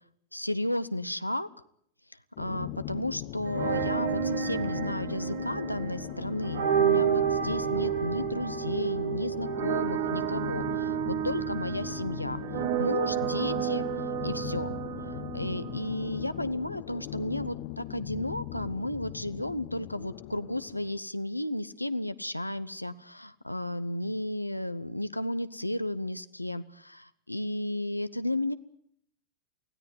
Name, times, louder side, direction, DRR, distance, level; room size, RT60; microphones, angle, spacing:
voice 1, 0.3-1.5 2.4-12.4 12.8-13.9 14.2-14.7 15.3-28.5, left 1 dB, 85° left, 13 dB, 0.8 m, -33 dB
sound 1, 2.4-21.0, left 15 dB, 45° left, 1.1 m, -39 dB
sound 2, 3.4-16.4, right 9 dB, 55° right, 1.7 m, -31 dB
24.0 x 16.5 x 9.3 m, 0.67 s
figure-of-eight pair, 90°, 0 cm